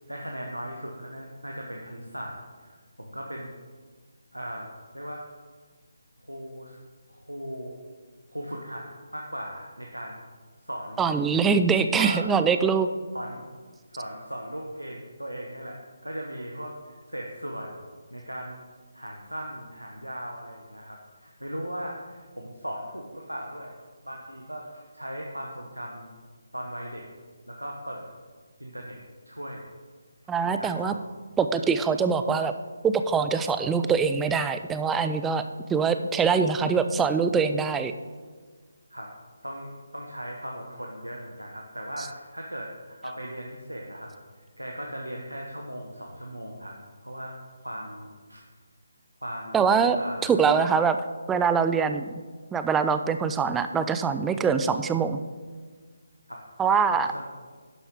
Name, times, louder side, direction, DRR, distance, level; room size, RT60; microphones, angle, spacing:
voice 1, 0.1-2.4 2.6-3.5 4.3-5.2 6.3-6.8 7.1-7.8 8.3-10.2 10.7-11.1 12.0-12.3 13.1-13.5 13.9-17.8 18.1-18.6 18.9-23.7 24.0-26.1 26.5-27.0 27.5-28.1 28.6-29.0 29.3-29.7 30.4-31.0 38.9-39.1 39.4-44.1 44.6-46.7 47.0-47.4 47.6-48.4 49.2-49.7 49.9-50.4 56.3-56.4 56.9-57.2, equal, 85° right, 0 dB, 1.1 m, -38 dB
voice 2, 11.0-12.9 30.3-30.9 31.4-32.5 32.8-35.4 35.7-37.9 49.5-51.0 51.3-52.1 52.5-55.2 56.6-57.1, right 6 dB, 10° right, 9 dB, 0.3 m, -23 dB
11.0 x 7.0 x 3.6 m, 1.5 s
figure-of-eight pair, 150°, 0 cm